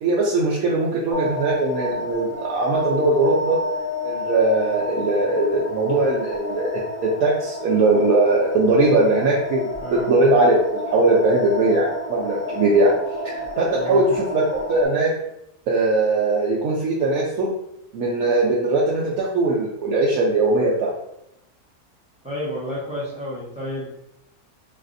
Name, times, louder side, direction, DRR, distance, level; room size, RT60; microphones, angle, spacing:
voice 1, 0.0-3.6 4.0-9.7 10.1-12.9 13.2-15.1 15.7-17.5 17.9-20.9, right 2 dB, 70° right, -4 dB, 1.0 m, -20 dB
sound 1, 1.1-14.8, left 2 dB, 60° left, 0.9 m, -30 dB
voice 2, 13.7-14.0 22.2-23.9, equal, 5° right, -8 dB, 0.7 m, -31 dB
4.0 x 2.4 x 2.6 m, 0.81 s
omnidirectional pair, 1.7 m